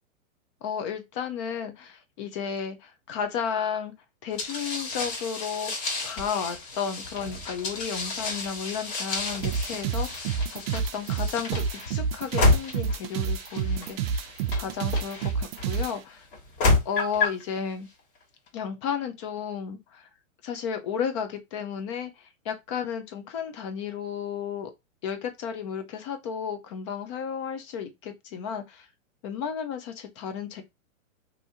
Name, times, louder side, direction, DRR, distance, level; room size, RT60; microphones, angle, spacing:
voice 1, 0.6-3.9 4.2-14.1 14.5-16.3 16.9-17.9 18.5-20.1 20.4-24.7 25.0-28.9 29.2-30.6, left 7 dB, 25° left, 0.4 m, -33 dB
sound 1, 4.4-15.7 16.3-17.4, left 3 dB, 40° left, 1.7 m, -30 dB
sound 2, 9.4-15.9, right 6 dB, 50° right, 0.5 m, -29 dB
3.4 x 2.7 x 2.7 m
hypercardioid pair, 145°, 40 cm